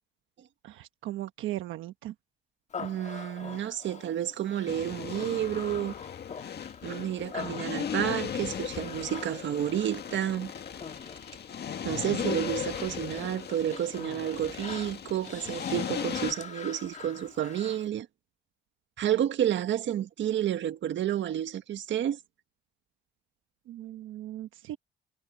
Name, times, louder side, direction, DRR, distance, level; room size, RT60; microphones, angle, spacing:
voice 1, 0.6-2.1 23.7-24.8, right 14 dB, 90° right, 1.1 m, -38 dB
Human voice, 2.7-17.9, left 6 dB, 35° left, 1.6 m, -44 dB
voice 2, 2.8-5.9 6.8-10.5 11.8-18.1 19.0-22.2, right 11 dB, 70° right, 1.7 m, -30 dB
sound 1, 4.7-16.3, left 8 dB, 55° left, 1.8 m, -37 dB
cardioid pair, 90°, 20 cm